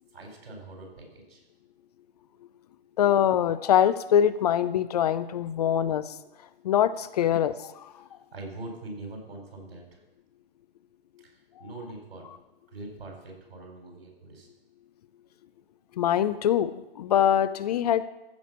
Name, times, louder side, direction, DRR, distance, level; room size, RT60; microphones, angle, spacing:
voice 1, 0.1-1.4 5.5-5.7 8.0-10.0 11.2-12.3 12.7-14.5, right 2 dB, 75° right, 1 dB, 4.2 m, -43 dB
voice 2, 3.0-6.0 6.6-7.8 16.0-18.0, left 10 dB, 40° left, 14 dB, 0.5 m, -23 dB
14.5 x 4.9 x 6.7 m, 0.97 s
hypercardioid pair, 130°, 31 cm